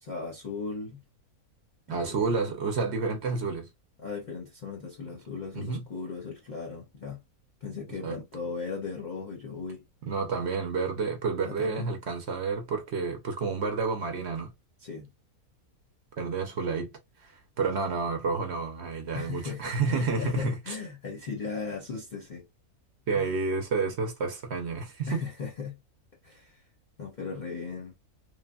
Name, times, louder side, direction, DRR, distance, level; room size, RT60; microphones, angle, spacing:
voice 1, 0.0-1.0 1.9-2.4 4.0-7.2 7.6-9.8 11.4-11.9 14.8-15.1 19.1-22.4 23.1-23.3 25.1-25.8 26.2-26.6 27.0-27.9, left 5 dB, 40° left, 0.7 m, -37 dB
voice 2, 1.9-3.7 5.5-5.8 8.0-8.2 10.0-14.5 16.2-16.9 17.2-20.8 23.1-25.3, right 4 dB, 60° right, 0.8 m, -30 dB
3.2 x 2.1 x 2.3 m
omnidirectional pair, 1.6 m